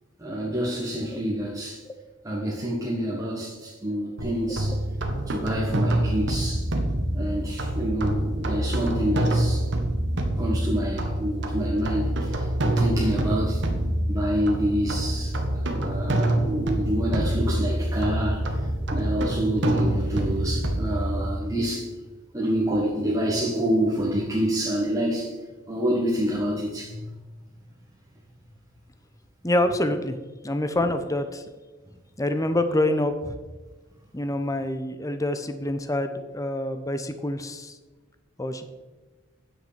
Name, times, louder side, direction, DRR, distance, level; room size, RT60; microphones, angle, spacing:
voice 1, 0.2-1.8 2.2-4.8 5.3-6.6 7.1-9.7 10.4-13.6 14.1-15.4 15.7-18.5 18.9-21.8 22.3-25.3 25.7-27.1, equal, 15° right, -6 dB, 1.6 m, -27 dB
sound 1, 4.2-21.4, right 1 dB, 60° right, 1.3 m, -26 dB
voice 2, 29.4-30.2 30.4-31.4 32.2-33.4 34.1-37.8 38.4-38.7, left 1 dB, 15° left, 9 dB, 0.8 m, -26 dB
9.5 x 8.0 x 5.2 m, 1.3 s
head